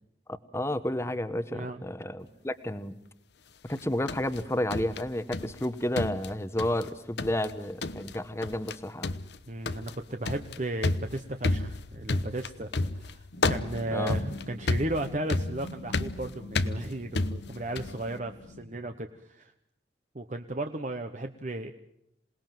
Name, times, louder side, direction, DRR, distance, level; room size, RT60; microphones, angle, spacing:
voice 1, 0.5-2.9 3.7-9.1 13.9-14.2, left 1 dB, 15° left, 12 dB, 1.0 m, -31 dB
voice 2, 1.5-1.8 9.5-19.5 20.1-21.7, right 1 dB, 40° right, 6 dB, 1.0 m, -35 dB
sound 1, 3.7-5.7 6.0-6.9 7.2-7.5 7.8-8.2 8.4-8.8 9.0-18.0, left 2 dB, 70° left, 0.9 m, -31 dB
sound 2, 13.3-18.6, left 2 dB, 85° left, 3.2 m, -45 dB
27.0 x 19.0 x 7.6 m, 0.79 s
head